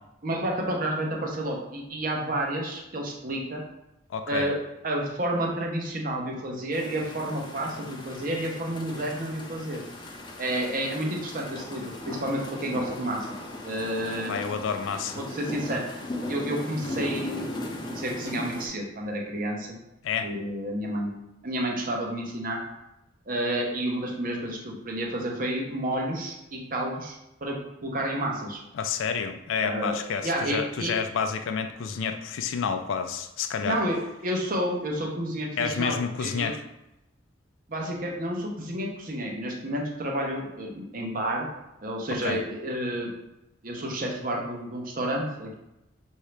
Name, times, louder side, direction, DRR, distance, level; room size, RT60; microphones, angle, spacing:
voice 1, 0.2-3.6 4.3-4.6 4.8-9.8 10.4-13.3 13.6-14.4 15.2-15.9 16.3-17.5 17.9-19.8 20.2-21.1 21.4-22.6 23.3-28.6 29.6-30.0 30.2-30.9 33.6-34.0 34.2-36.5 37.7-41.5 41.8-43.1 43.6-45.5, right 1 dB, 45° right, -1 dB, 0.9 m, -30 dB
voice 2, 4.1-4.5 14.3-15.2 20.0-20.3 28.7-33.8 35.6-36.6 42.2-42.4, left 6 dB, 85° left, 7 dB, 0.3 m, -29 dB
sound 1, 6.7-18.7, left 1 dB, 25° left, 0.5 m, -37 dB
5.8 x 2.7 x 3.2 m, 0.90 s
head